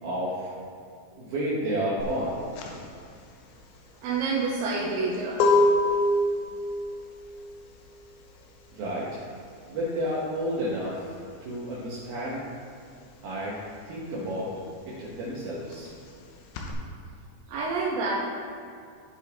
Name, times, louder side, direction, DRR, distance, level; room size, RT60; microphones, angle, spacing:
voice 1, 0.0-0.5 1.2-2.4 8.7-9.2 9.7-11.2 11.4-12.4 13.2-13.6 13.9-14.5 15.0-15.9, equal, 65° right, -8 dB, 2.8 m, -31 dB
sound 1, 2.0-12.2 12.5-16.7, left 2 dB, 90° left, 3.4 m, -28 dB
voice 2, 4.0-5.4 17.5-18.2, right 3 dB, 85° right, -5 dB, 3.2 m, -28 dB
14.0 x 5.4 x 3.5 m, 2.3 s
omnidirectional pair, 5.2 m